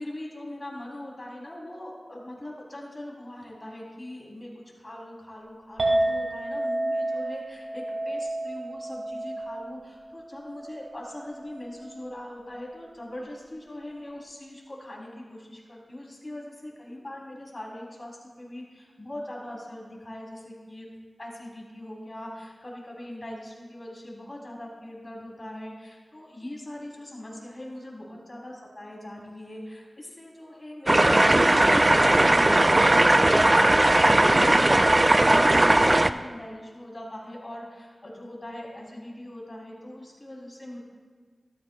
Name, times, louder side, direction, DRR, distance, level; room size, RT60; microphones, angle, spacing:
voice 1, 0.0-20.9 21.2-40.8, left 1 dB, 35° left, -2 dB, 3.3 m, -41 dB
Chink clink, 5.8-12.1, right 1 dB, 75° right, 1.9 m, -31 dB
sound 1, 30.9-36.1, right 1 dB, 30° right, 0.4 m, -18 dB
13.5 x 12.5 x 2.3 m, 1.5 s
cardioid pair, 45°, 0 cm